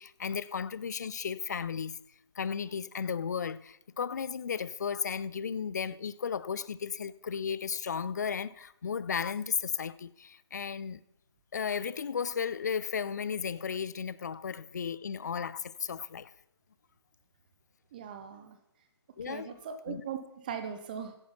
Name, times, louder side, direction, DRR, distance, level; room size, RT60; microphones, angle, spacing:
voice 1, 0.0-2.0 2.4-11.0 11.5-16.3 19.2-19.5 19.9-20.0, left 6 dB, 40° left, 0.4 m, -34 dB
voice 2, 17.9-18.6 19.3-21.2, right 7 dB, 20° right, 0.6 m, -39 dB
10.5 x 9.8 x 5.6 m
figure-of-eight pair, 145°, 14 cm